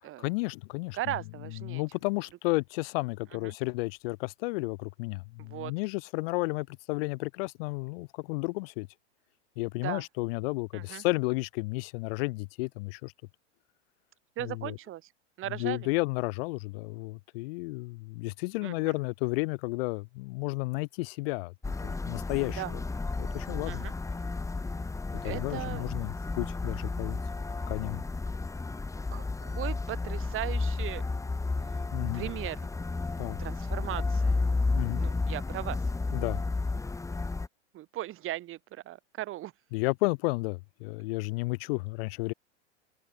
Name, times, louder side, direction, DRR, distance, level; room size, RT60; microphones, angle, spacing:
voice 1, 0.2-1.0 1.5-8.9 9.6-13.1 14.4-14.8 15.5-21.5 21.8-22.8 23.2-23.8 25.1-27.2 27.7-28.0 31.9-32.2 33.2-33.4 34.7-35.0 36.1-36.4 39.7-42.3, left 25 dB, 55° left, 2.2 m, -32 dB
voice 2, 0.9-1.8 3.4-3.5 5.4-5.7 9.8-10.0 10.7-11.0 14.4-15.0 15.4-15.9 18.6-18.9 22.6-22.7 23.7-23.9 25.2-25.9 29.1-31.0 31.6-31.8 32.1-32.7 33.4-34.4 34.9-35.8 37.7-39.5, right 15 dB, 35° right, 7.6 m, -37 dB
sound 1, 21.6-37.5, left 3 dB, 10° left, 2.7 m, -32 dB
open air
hypercardioid pair, 120°, 36 cm